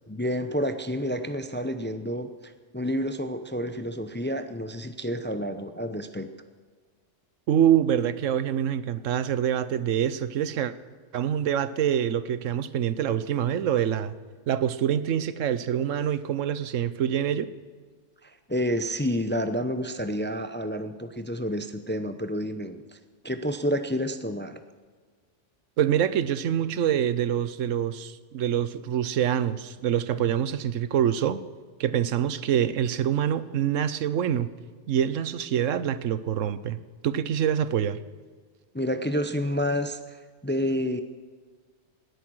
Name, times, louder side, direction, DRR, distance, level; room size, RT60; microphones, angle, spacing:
voice 1, 0.1-6.3 18.2-23.0 23.2-24.6 38.7-41.0, equal, 15° left, 9 dB, 0.5 m, -29 dB
voice 2, 7.5-10.7 11.1-14.1 14.5-17.5 25.8-31.4 31.8-34.5 34.9-38.0, right 9 dB, 90° right, 15 dB, 1.1 m, -25 dB
18.5 x 9.9 x 6.3 m, 1.5 s
omnidirectional pair, 1.3 m